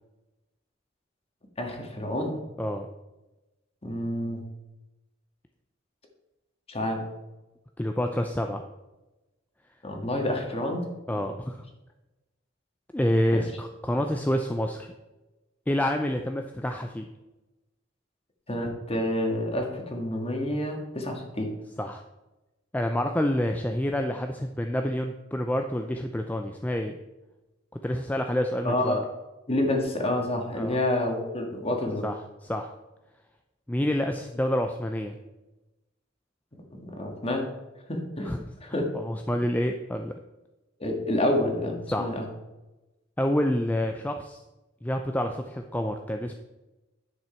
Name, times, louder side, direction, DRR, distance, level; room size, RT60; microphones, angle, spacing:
voice 1, 1.6-2.4 3.8-4.4 6.7-7.0 9.8-10.8 11.1-11.3 13.3-13.5 18.5-21.5 28.6-29.0 29.5-32.1 36.7-37.5 37.9-38.3 38.6-38.9 40.8-42.2, left 1 dB, 30° left, 2 dB, 1.7 m, -28 dB
voice 2, 7.8-8.6 11.1-11.7 12.9-14.9 15.7-17.1 21.8-22.0 22.7-27.0 27.8-29.1 30.6-30.8 32.0-32.2 32.4-32.7 33.7-35.2 38.3-38.4 38.9-40.1 41.9-42.1 43.2-44.4 44.8-46.3, left 1 dB, 10° left, 4 dB, 0.4 m, -28 dB
10.5 x 6.3 x 4.4 m, 1.0 s
head